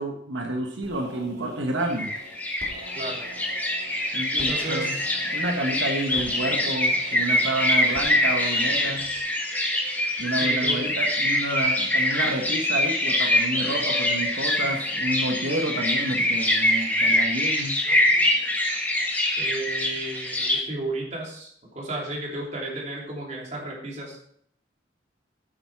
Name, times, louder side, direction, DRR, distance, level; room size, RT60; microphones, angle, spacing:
voice 1, 0.0-2.1 4.1-5.0 5.3-9.1 10.2-17.8, right 1 dB, 85° right, 2 dB, 1.3 m, -29 dB
sound 1, 0.8-9.2, equal, 60° right, 3.3 m, -45 dB
sound 2, 1.9-20.6, left 1 dB, 10° left, 1.5 m, -24 dB
voice 2, 2.9-3.3 4.4-5.1 10.4-10.8 17.8-18.0 19.4-21.5 21.7-24.2, right 2 dB, 40° right, -2 dB, 3.1 m, -33 dB
9.0 x 8.6 x 4.7 m, 0.66 s
head